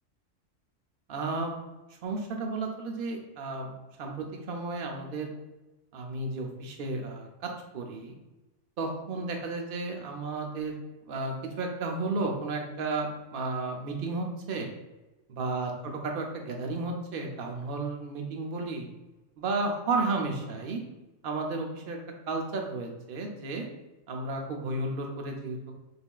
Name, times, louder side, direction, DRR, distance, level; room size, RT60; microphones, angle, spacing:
voice 1, 1.1-1.6 2.0-3.7 4.0-5.3 5.9-7.3 7.7-8.1 8.8-10.7 11.1-14.7 15.3-18.9 19.4-20.8 21.2-22.0 22.3-23.6 24.1-25.6, right 3 dB, 55° right, 2 dB, 0.7 m, -33 dB
3.4 x 3.3 x 2.3 m, 1.1 s
omnidirectional pair, 1.4 m